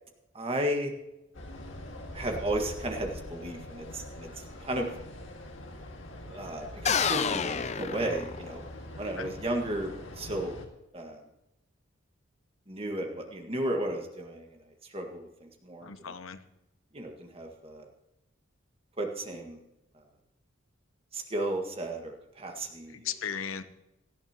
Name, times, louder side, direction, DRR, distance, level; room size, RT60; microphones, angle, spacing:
voice 1, 0.3-0.9 2.1-4.9 6.3-8.6 9.0-10.6 10.9-11.2 12.7-14.6 14.9-15.9 16.9-17.9 19.0-19.6 21.1-23.1, right 1 dB, 30° right, 3 dB, 1.7 m, -34 dB
sound 1, 1.3-10.7, left 1 dB, 70° left, 2.0 m, -43 dB
sound 2, 6.8-8.8, left 6 dB, 35° left, 0.5 m, -29 dB
voice 2, 15.8-16.4 22.9-23.6, left 7 dB, 85° left, 11 dB, 0.9 m, -36 dB
18.0 x 13.0 x 3.0 m, 0.91 s
head